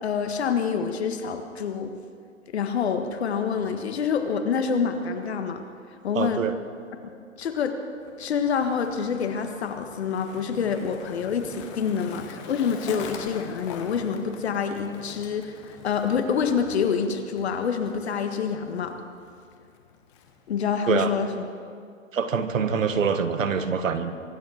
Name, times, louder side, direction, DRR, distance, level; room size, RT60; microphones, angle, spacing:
voice 1, 0.0-1.9 2.5-5.6 6.0-6.4 7.4-7.8 8.2-19.0 20.5-21.5, left 6 dB, 50° left, 7 dB, 1.6 m, -27 dB
voice 2, 6.1-6.5 20.9-21.1 22.1-24.1, right 6 dB, 75° right, 9 dB, 1.5 m, -24 dB
Skateboard, 8.0-20.7, left 6 dB, 20° left, 1.1 m, -44 dB
23.5 x 9.2 x 6.5 m, 2.3 s
hypercardioid pair, 155°, 40 cm